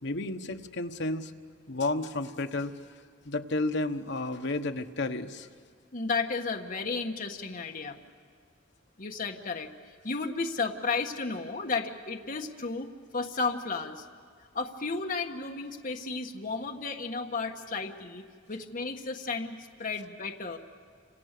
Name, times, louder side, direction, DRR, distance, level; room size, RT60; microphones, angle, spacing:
voice 1, 0.0-1.3 1.7-2.7 3.2-5.5, left 2 dB, 65° left, 6 dB, 1.3 m, -31 dB
voice 2, 5.9-8.0 9.0-9.7 10.0-14.0 14.5-20.6, left 4 dB, 45° left, 3 dB, 1.5 m, -33 dB
30.0 x 27.0 x 6.8 m, 2.1 s
head